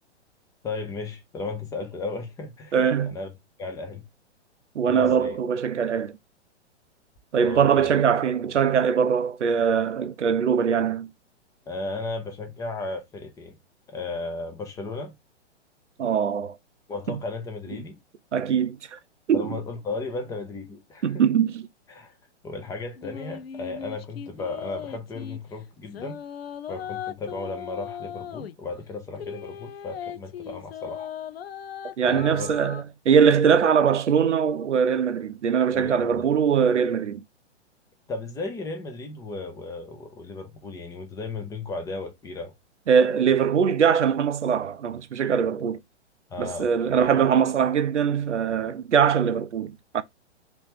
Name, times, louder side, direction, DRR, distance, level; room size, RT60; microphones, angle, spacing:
voice 1, 0.6-2.7 3.1-3.3 3.6-4.0 4.9-5.4 7.4-7.9 11.7-13.6 13.9-15.1 16.9-18.0 19.3-21.2 21.9-22.1 22.4-26.2 26.7-31.1 32.0-32.5 35.7-36.3 38.1-42.5 46.3-47.1, left 3 dB, 10° left, 0.6 m, -35 dB
voice 2, 2.7-3.1 4.8-6.1 7.3-11.1 16.0-16.6 17.1-17.2 18.3-19.0 19.3-19.6 21.0-21.7 32.0-37.2 42.9-45.8 46.4-50.0, right 7 dB, 80° right, 0.5 m, -22 dB
sound 1, 23.0-25.4 25.8-28.6 29.1-32.8, left 9 dB, 60° left, 0.5 m, -38 dB
3.0 x 3.0 x 3.3 m
figure-of-eight pair, 115°, 35 cm